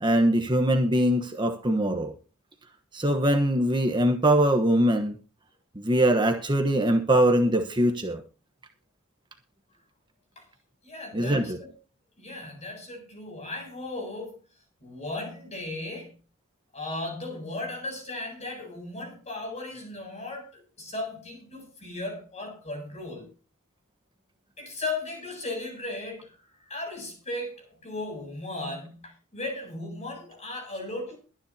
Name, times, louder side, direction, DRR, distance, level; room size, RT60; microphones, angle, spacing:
voice 1, 0.0-2.1 2.9-5.2 5.8-8.2 11.1-11.6, right 1 dB, 20° right, 1.1 m, -22 dB
voice 2, 10.8-11.7 12.2-14.4 14.8-16.2 16.7-23.3 24.6-31.2, left 2 dB, 30° left, 7.4 m, -36 dB
22.5 x 10.0 x 2.8 m
head